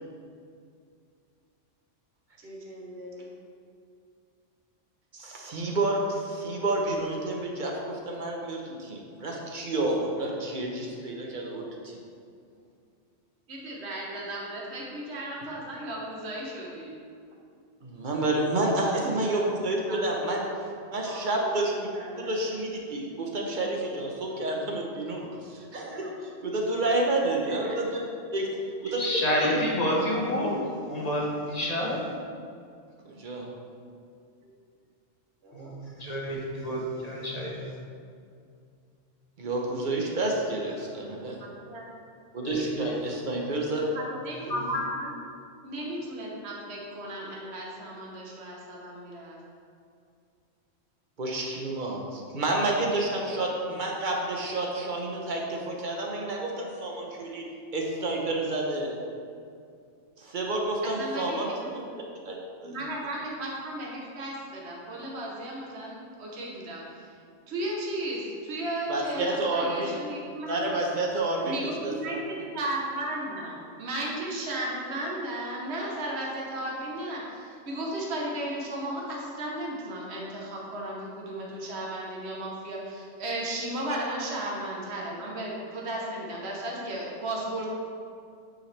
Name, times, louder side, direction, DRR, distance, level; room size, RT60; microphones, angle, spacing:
voice 1, 2.4-3.3 13.5-16.9 18.9-19.4 19.9-20.5 21.0-22.4 27.4-27.7 34.4-34.5 35.4-35.7 41.4-41.8 43.8-45.1 45.6-49.4 60.8-61.9 62.6-66.8 67.5-70.8 71.4-87.7, right 1 dB, 60° right, -3 dB, 1.3 m, -35 dB
voice 2, 5.1-12.0 17.8-20.4 20.9-21.7 22.3-28.0 28.3-28.5 28.8-29.1 33.0-33.5 39.4-41.4 42.3-43.8 51.2-57.4 57.7-59.0 60.2-61.5 61.9-62.4 62.6-62.8 68.9-69.9 70.5-72.2, right 2 dB, 45° right, -1 dB, 1.0 m, -29 dB
voice 3, 29.0-32.0 35.5-37.8 42.4-42.9 44.5-44.8, equal, 35° left, -3 dB, 1.1 m, -29 dB
8.8 x 5.0 x 3.4 m, 2.4 s
omnidirectional pair, 1.3 m